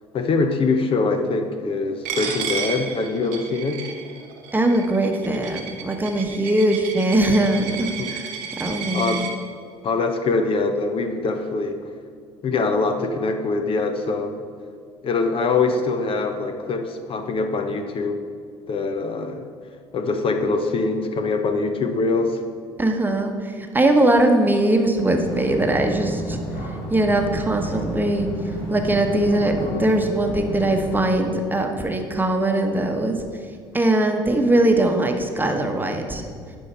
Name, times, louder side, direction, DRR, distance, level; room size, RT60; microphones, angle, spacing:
voice 1, 0.1-3.8 8.0-8.1 8.9-9.3 9.8-11.8 12.4-14.4 15.0-18.2 18.7-19.4 19.9-22.4, left 3 dB, 45° left, 7 dB, 0.8 m, -23 dB
Coin (dropping), 2.1-9.3, right 7 dB, 70° right, 1.0 m, -32 dB
voice 2, 4.5-9.2 22.8-26.4 26.6-33.2 33.7-36.3, right 1 dB, 15° right, 4 dB, 1.1 m, -21 dB
sound 1, 25.1-31.1, right 1 dB, 70° left, 2.3 m, -32 dB
10.5 x 5.6 x 4.4 m, 2.1 s
hypercardioid pair, 65°, 13 cm